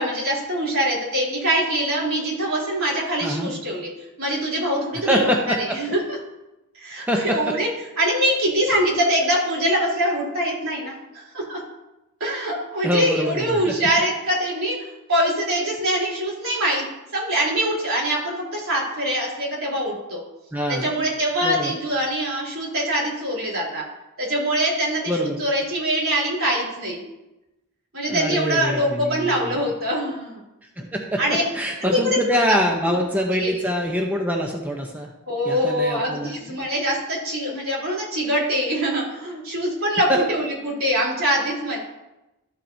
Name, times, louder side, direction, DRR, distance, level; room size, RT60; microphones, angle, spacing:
voice 1, 0.0-3.9 4.2-6.2 6.8-7.7 8.0-11.6 12.2-16.9 17.1-20.2 20.8-23.8 24.2-27.0 27.9-30.4 31.2-31.4 31.8-32.2 32.9-33.0 33.3-33.6 35.3-41.8, equal, 65° right, -5 dB, 3.4 m, -23 dB
voice 2, 5.1-5.8 7.0-7.5 12.8-13.7 20.5-20.9 21.4-21.8 25.1-25.4 28.1-29.6 30.8-31.2 31.5-35.1 35.4-36.4 40.1-40.2, equal, 10° right, 0 dB, 0.7 m, -24 dB
12.5 x 7.2 x 2.7 m, 0.97 s
head